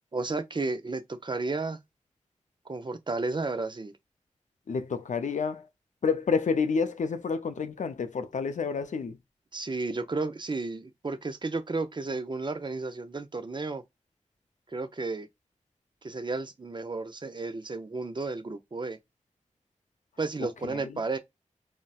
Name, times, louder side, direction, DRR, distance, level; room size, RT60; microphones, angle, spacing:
voice 1, 0.1-1.8 2.7-3.9 9.5-13.8 14.7-15.3 16.0-19.0 20.2-21.2, right 3 dB, 35° right, 0.5 m, -33 dB
voice 2, 4.7-5.7 6.0-9.2 20.7-20.8, left 5 dB, 70° left, 0.4 m, -29 dB
3.9 x 2.1 x 2.3 m
cardioid pair, 45°, 13 cm